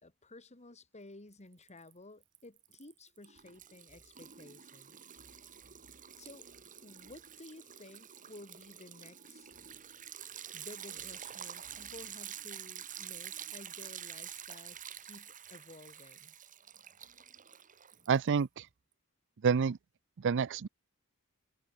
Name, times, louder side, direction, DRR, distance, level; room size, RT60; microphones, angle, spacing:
voice 1, 0.0-5.0 6.2-6.5 6.8-9.5 10.5-16.4, left 2 dB, 30° left, 2.1 m, -54 dB
Liquid, 1.3-1.9 2.2-18.4, right 9 dB, 40° right, 2.9 m, -48 dB
voice 2, 18.1-18.7 19.4-19.8 20.2-20.7, right 6 dB, 55° right, 0.5 m, -28 dB
head